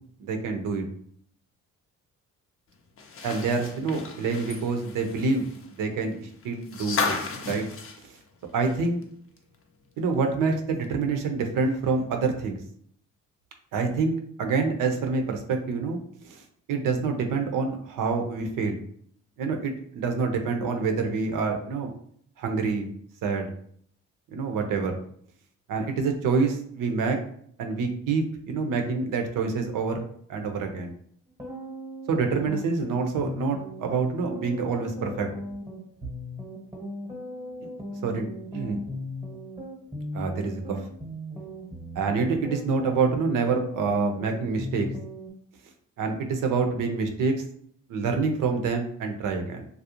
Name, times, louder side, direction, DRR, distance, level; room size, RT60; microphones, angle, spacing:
voice 1, 0.2-0.8 3.2-5.5 5.8-7.2 7.4-7.6 8.0-8.1 8.5-9.0 10.0-12.6 13.7-16.0 16.2-16.4 16.7-18.8 19.4-21.9 22.4-22.9 23.2-23.5 24.3-25.0 25.7-27.2 27.6-30.9 32.1-35.3 37.6-37.7 38.0-38.3 38.5-38.8 40.1-40.8 42.0-44.9 46.0-47.4 47.9-49.7, right 4 dB, 70° right, 4 dB, 0.6 m, -27 dB
sound 1, 3.0-9.0 9.4-9.5 10.8-10.9, left 4 dB, 40° left, 0.5 m, -34 dB
sound 2, 31.3-45.3, left 1 dB, 10° right, 0.9 m, -38 dB
2.4 x 2.0 x 2.8 m, 0.62 s
supercardioid pair, 60°, 34 cm